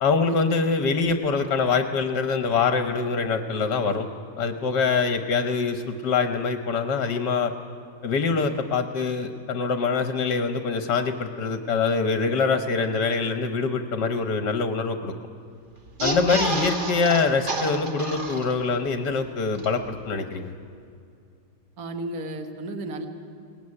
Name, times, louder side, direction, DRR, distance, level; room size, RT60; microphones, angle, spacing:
voice 1, 0.0-4.1 4.4-7.5 8.0-15.1 16.0-20.5, left 4 dB, 70° left, 7 dB, 1.7 m, -24 dB
sound 1, 15.9-18.9 19.2-19.3 19.5-19.7, right 2 dB, 30° right, 1.6 m, -29 dB
voice 2, 21.8-23.1, right 2 dB, 55° right, 6 dB, 1.9 m, -33 dB
22.5 x 19.0 x 9.8 m, 2.4 s
omnidirectional pair, 2.0 m